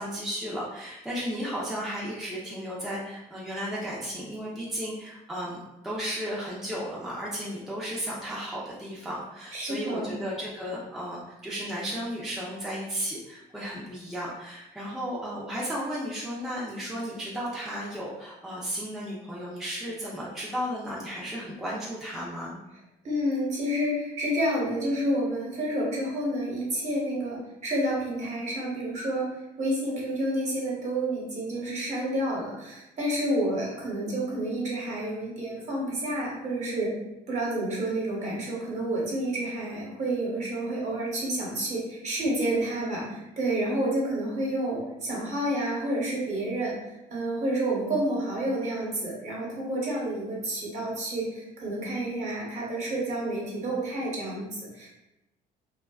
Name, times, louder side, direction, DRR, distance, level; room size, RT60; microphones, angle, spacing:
voice 1, 0.0-22.6, equal, ahead, -6 dB, 0.5 m, -34 dB
voice 2, 9.5-10.1 23.0-29.3 29.6-36.9 37.3-46.7 47.1-54.9, right 1 dB, 45° right, -4 dB, 1.0 m, -29 dB
2.6 x 2.3 x 2.3 m, 0.92 s
cardioid pair, 110°, 17 cm